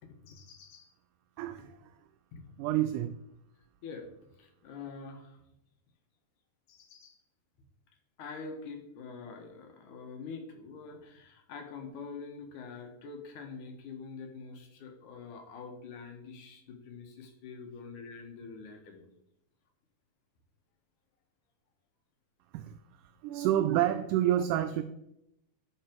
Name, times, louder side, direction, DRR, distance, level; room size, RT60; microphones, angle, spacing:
voice 1, 0.0-0.9 1.6-1.7 2.3-2.5 3.8-4.1 4.4-5.4 6.7-7.2 8.2-19.1, left 4 dB, 65° left, 3 dB, 2.6 m, -45 dB
voice 2, 1.4-1.7 2.6-3.2 22.5-22.7 23.2-24.8, right 12 dB, 85° right, 9 dB, 1.9 m, -28 dB
11.5 x 5.8 x 4.5 m, 0.82 s
omnidirectional pair, 4.2 m